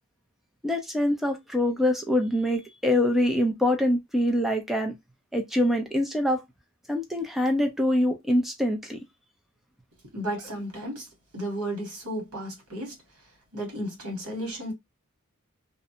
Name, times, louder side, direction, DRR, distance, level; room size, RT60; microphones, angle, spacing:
voice 1, 0.6-4.9 5.3-6.4 6.9-9.0, left 1 dB, ahead, 0.4 m, -24 dB
voice 2, 10.1-11.1 11.3-13.0 13.5-14.7, right 1 dB, 85° right, 1.4 m, -33 dB
2.5 x 2.1 x 2.7 m
head